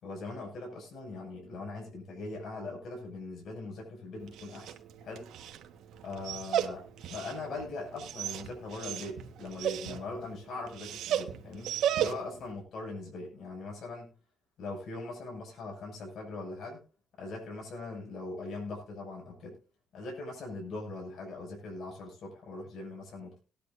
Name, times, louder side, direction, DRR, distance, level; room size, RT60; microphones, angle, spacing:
voice 1, 0.0-4.8 5.0-5.3 6.0-11.7 12.0-14.1 14.6-16.8 17.2-19.6 19.9-23.4, left 2 dB, 65° left, 0 dB, 6.6 m, -41 dB
Dog, 4.2-12.5, right 10 dB, 80° right, 1.4 m, -35 dB
19.5 x 10.5 x 2.6 m, 0.35 s
cardioid pair, 90°, 0 cm